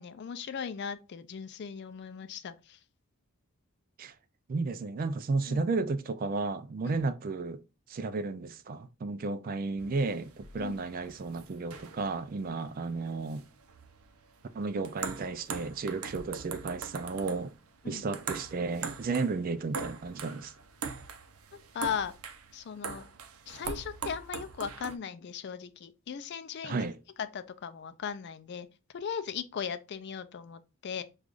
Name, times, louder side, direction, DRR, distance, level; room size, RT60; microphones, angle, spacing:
voice 1, 0.0-2.8 5.5-5.7 6.8-6.9 10.6-10.7 17.8-18.1 21.5-22.1 22.5-23.1 23.5-26.9 27.2-28.7 28.9-31.0, left 7 dB, 50° left, 0.4 m, -38 dB
voice 2, 4.5-7.6 7.9-13.5 14.5-17.5 17.8-20.5 26.6-27.0, right 3 dB, 40° right, 0.3 m, -33 dB
sound 1, 9.8-25.0, right 5 dB, 90° right, 0.6 m, -42 dB
6.4 x 2.4 x 2.4 m
head